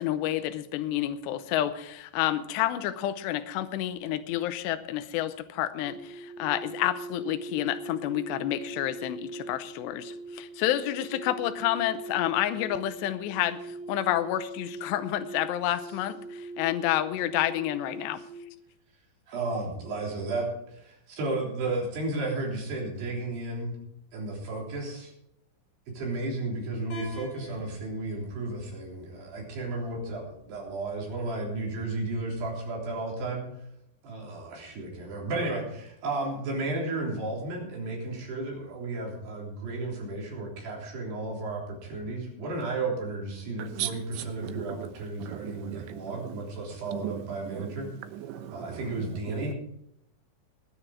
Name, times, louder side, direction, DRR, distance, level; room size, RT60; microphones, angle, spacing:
voice 1, 0.0-18.2, left 13 dB, 80° left, 2.8 m, -29 dB
sound 1, 5.8-18.5, right 2 dB, 25° right, 4.5 m, -41 dB
voice 2, 19.3-23.7 24.1-25.1 25.9-33.4 34.0-47.9 48.5-49.5, right 2 dB, 65° right, 5.5 m, -33 dB
sound 2, 26.9-32.9, left 3 dB, 65° left, 7.0 m, -49 dB
voice 3, 43.6-49.5, right 11 dB, 80° right, 3.3 m, -38 dB
19.0 x 9.9 x 4.8 m
omnidirectional pair, 5.2 m